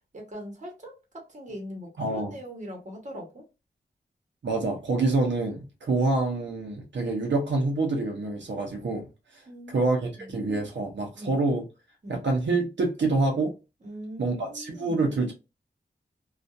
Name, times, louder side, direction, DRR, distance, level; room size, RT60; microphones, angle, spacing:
voice 1, 0.1-3.4 9.5-10.3 11.1-11.4 12.0-12.2 13.8-15.1, equal, 40° right, 1.1 m, -41 dB
voice 2, 2.0-2.3 4.4-9.1 9.7-11.6 12.1-13.5 14.2-15.3, right 3 dB, 85° right, 0.7 m, -26 dB
2.6 x 2.4 x 2.3 m
wide cardioid pair, 80°, 18 cm